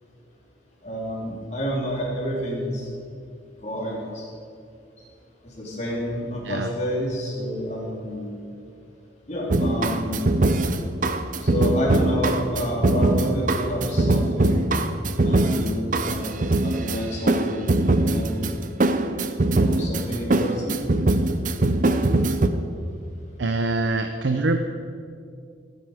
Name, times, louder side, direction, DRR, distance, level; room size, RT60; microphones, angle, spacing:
voice 1, 0.8-2.9 3.6-4.3 5.5-8.3 9.3-10.2 11.4-14.7 15.2-18.4 19.2-20.8, equal, 40° left, -4 dB, 3.5 m, -29 dB
sound 1, 9.5-22.5, right 2 dB, 45° right, 0.6 m, -22 dB
voice 2, 23.4-24.6, right 2 dB, 85° right, 7 dB, 0.6 m, -24 dB
17.5 x 9.2 x 5.0 m, 2.4 s
head